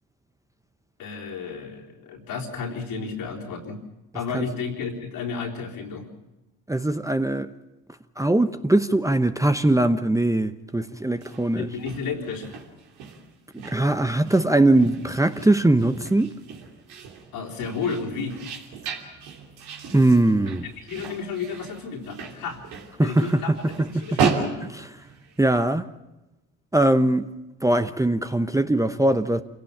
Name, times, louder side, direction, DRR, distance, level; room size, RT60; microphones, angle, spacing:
voice 1, 1.0-3.8 4.1-6.1 11.5-12.6 17.3-18.4 20.8-22.6 23.0-23.5 23.9-24.4, left 5 dB, 70° left, 4.0 m, -32 dB
voice 2, 6.7-7.5 8.2-11.7 13.6-16.3 19.9-20.6 23.0-24.4 24.7-24.9 25.4-25.9 26.7-27.2 27.6-29.4, right 1 dB, 10° right, 0.9 m, -21 dB
sound 1, 11.1-25.6, right 5 dB, 80° right, 3.1 m, -34 dB
26.5 x 17.0 x 7.3 m
supercardioid pair, 65°, 37 cm